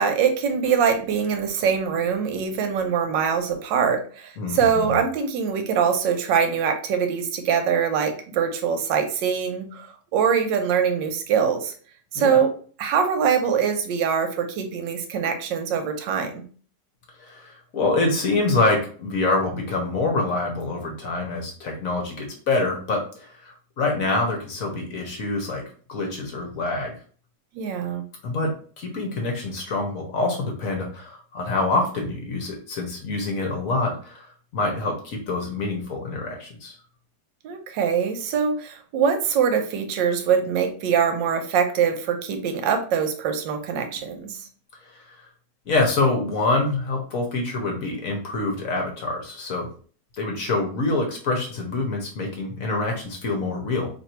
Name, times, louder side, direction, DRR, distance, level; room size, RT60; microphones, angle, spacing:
voice 1, 0.0-11.7 12.1-12.5 12.8-16.4 27.5-28.0 37.4-44.4, right 7 dB, 85° right, 6 dB, 1.3 m, -23 dB
voice 2, 4.4-5.0 12.1-12.4 17.2-25.6 25.9-26.9 28.2-36.7 44.8-45.3 45.7-49.7 50.2-53.9, left 2 dB, 60° left, 2 dB, 1.1 m, -26 dB
3.0 x 2.5 x 4.3 m, 0.42 s
omnidirectional pair, 1.9 m